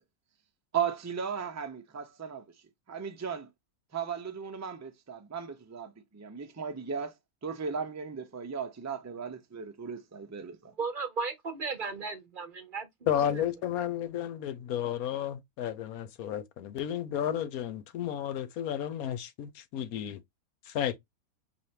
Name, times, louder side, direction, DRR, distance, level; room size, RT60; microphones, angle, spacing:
voice 1, 0.7-2.4 2.9-3.5 3.9-7.1 7.4-10.7, right 7 dB, 20° right, 0.4 m, -36 dB
voice 2, 10.8-13.4, right 4 dB, 40° right, 1.1 m, -36 dB
voice 3, 13.1-20.2 20.7-20.9, left 10 dB, 80° left, 1.2 m, -32 dB
4.8 x 3.3 x 2.8 m
omnidirectional pair, 1.5 m